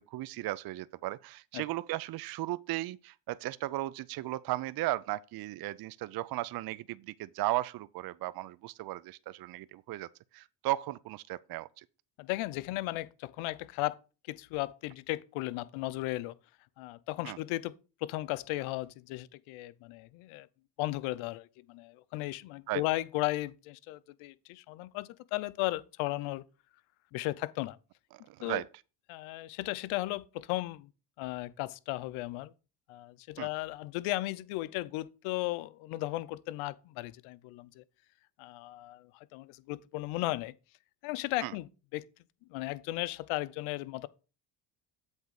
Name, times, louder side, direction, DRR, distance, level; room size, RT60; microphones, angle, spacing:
voice 1, 0.1-10.1 10.3-11.8 17.2-17.4 22.7-22.8 28.1-28.7 33.4-33.5 41.4-41.5, right 16 dB, 50° right, 0.5 m, -36 dB
voice 2, 12.2-14.0 14.3-16.3 16.8-17.7 18.0-20.5 20.8-26.4 27.1-27.8 28.4-28.6 29.1-30.9 31.2-32.5 32.9-37.8 38.4-40.5 41.0-42.0 42.5-44.1, left 18 dB, 80° left, 0.6 m, -35 dB
8.0 x 3.5 x 6.5 m
supercardioid pair, 70°, 49 cm